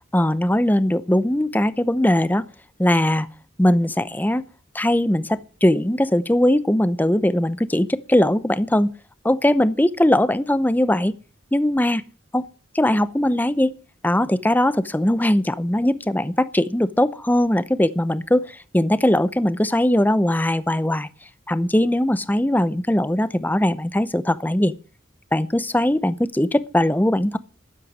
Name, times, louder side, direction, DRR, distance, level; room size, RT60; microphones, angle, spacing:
voice 1, 0.1-2.4 2.8-3.3 3.6-4.4 4.7-8.9 9.2-11.1 11.5-12.0 12.3-12.5 12.7-13.7 14.0-21.1 21.5-24.7 25.3-27.4, left 1 dB, 10° left, 0.7 m, -20 dB
13.0 x 9.1 x 9.5 m
head